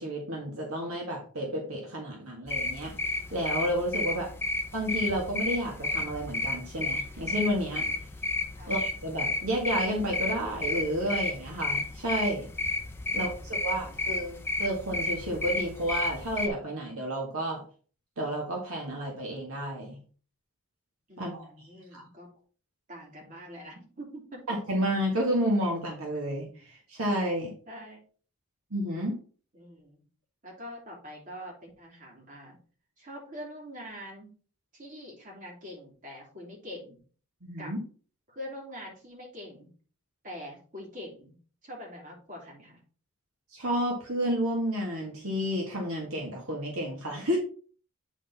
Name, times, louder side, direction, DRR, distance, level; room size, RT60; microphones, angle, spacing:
voice 1, 0.0-2.9 3.3-4.3 4.7-7.8 8.7-12.5 13.1-17.6 18.2-20.0 21.2-21.5 21.9-22.0 24.5-27.5 28.7-29.1 37.4-37.8 43.5-47.4, equal, 70° right, -1 dB, 1.8 m, -31 dB
sound 1, 2.5-16.5, left 2 dB, 10° left, 0.6 m, -32 dB
voice 2, 4.0-4.4 8.6-8.7 13.0-14.0 21.1-22.3 22.9-24.5 27.7-28.0 29.5-30.0 30.4-32.6 33.0-34.3 34.7-37.0 37.6-37.7 38.3-39.7 40.2-42.8, equal, 35° right, -2 dB, 3.0 m, -44 dB
9.0 x 4.1 x 4.2 m, 0.41 s
head